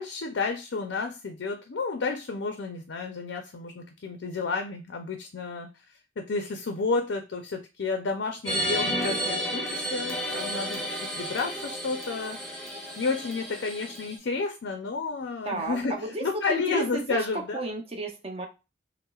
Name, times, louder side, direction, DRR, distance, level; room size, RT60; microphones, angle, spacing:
voice 1, 0.0-12.6 13.0-17.6, left 4 dB, 75° left, 5 dB, 0.5 m, -31 dB
sound 1, 8.5-14.2, equal, 5° left, 0.8 m, -32 dB
voice 2, 15.4-18.5, right 2 dB, 30° right, 3 dB, 0.7 m, -32 dB
5.5 x 2.1 x 2.3 m, 0.28 s
head